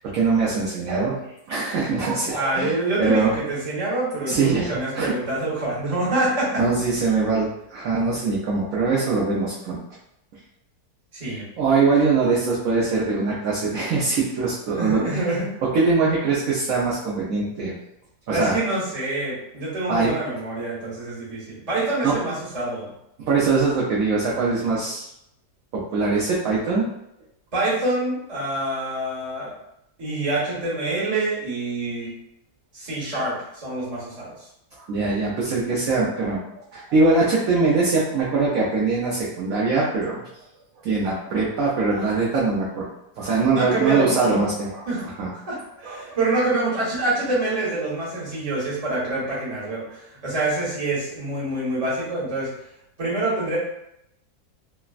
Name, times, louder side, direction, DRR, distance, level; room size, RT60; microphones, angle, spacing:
voice 1, 0.1-1.2 1.5-3.3 4.3-4.7 4.9-5.1 6.6-9.8 11.6-15.2 15.7-17.7 18.3-18.6 19.9-20.1 22.0-22.1 23.3-25.0 25.7-26.9 34.8-40.3 40.8-42.9 43.2-45.3 45.8-46.2, right 4 dB, 70° right, -5 dB, 0.9 m, -22 dB
voice 2, 2.3-6.6 11.1-11.4 14.7-15.5 18.3-22.9 27.5-29.5 30.0-32.1 32.7-34.5 43.5-44.5 44.9-45.0 45.3-52.5 53.0-53.6, right 2 dB, 25° right, -8 dB, 0.9 m, -26 dB
3.3 x 2.0 x 2.3 m, 0.80 s
omnidirectional pair, 1.8 m